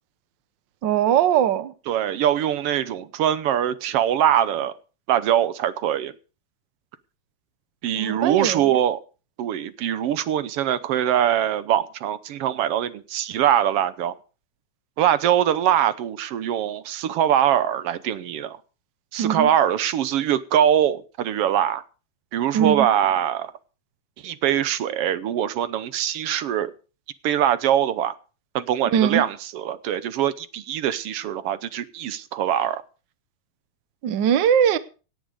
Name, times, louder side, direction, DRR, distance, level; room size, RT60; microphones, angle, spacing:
voice 1, 0.8-1.7 7.9-8.8 19.2-19.5 22.5-22.9 28.9-29.2 34.0-34.8, right 9 dB, 85° right, 1.0 m, -20 dB
voice 2, 1.9-4.7 5.1-6.1 7.8-9.0 9.4-14.1 15.0-18.6 19.1-21.8 22.3-23.5 24.2-26.7 27.2-28.1 28.5-32.8, right 10 dB, 70° right, 1.5 m, -22 dB
18.0 x 10.0 x 5.0 m
omnidirectional pair, 3.4 m